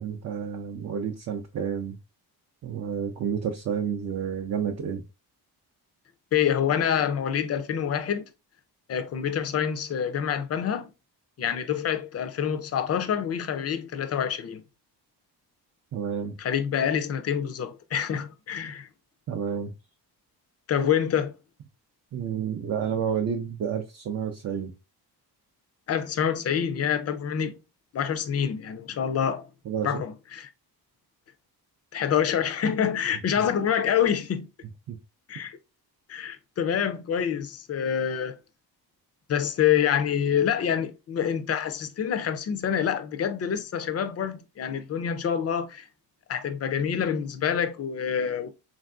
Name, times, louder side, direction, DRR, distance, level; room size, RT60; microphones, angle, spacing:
voice 1, 0.0-2.0 2.6-5.0 15.9-16.4 19.3-19.7 22.1-24.7 29.7-30.0 34.9-35.0, right 7 dB, 40° right, 0.4 m, -30 dB
voice 2, 6.3-8.3 8.9-10.9 11.4-14.6 16.4-18.9 20.7-21.3 25.9-27.5 27.9-29.5 29.8-30.5 31.9-34.5 35.3-35.6 36.1-38.4 39.3-45.9 46.3-48.5, left 8 dB, 40° left, 0.4 m, -26 dB
3.3 x 2.5 x 2.2 m
cardioid pair, 105°, 41 cm